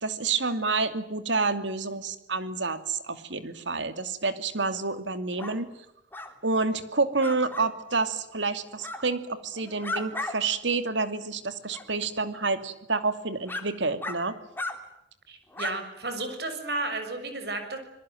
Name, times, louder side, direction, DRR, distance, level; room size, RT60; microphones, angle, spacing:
voice 1, 0.0-5.7 6.4-14.4, right 3 dB, 85° right, 10 dB, 2.7 m, -28 dB
sound 1, 5.4-5.6 6.1-6.3 7.2-7.7 8.8-9.0 9.5-10.3 10.7-10.8 11.7-11.8 12.6-12.7 13.5-13.6 14.0-14.2 14.5-14.8 15.5-15.7, left 2 dB, 10° left, 3.2 m, -34 dB
voice 2, 15.3-17.8, right 2 dB, 60° right, 7 dB, 6.5 m, -33 dB
26.5 x 22.5 x 9.1 m, 0.80 s
head